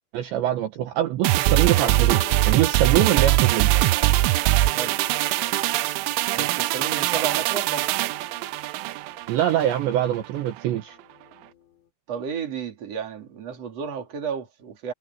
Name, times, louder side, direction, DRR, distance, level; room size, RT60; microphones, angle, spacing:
voice 1, 0.1-3.7 9.3-11.0, right 12 dB, 70° right, 3.4 m, -24 dB
sound 1, 1.2-9.8 10.1-10.3, right 17 dB, 85° right, 3.1 m, -22 dB
sound 2, 1.5-11.8, left 9 dB, 85° left, 8.3 m, -45 dB
voice 2, 4.7-5.0 6.3-7.9 12.1-14.9, right 7 dB, 35° right, 3.8 m, -32 dB
omnidirectional pair, 5.8 m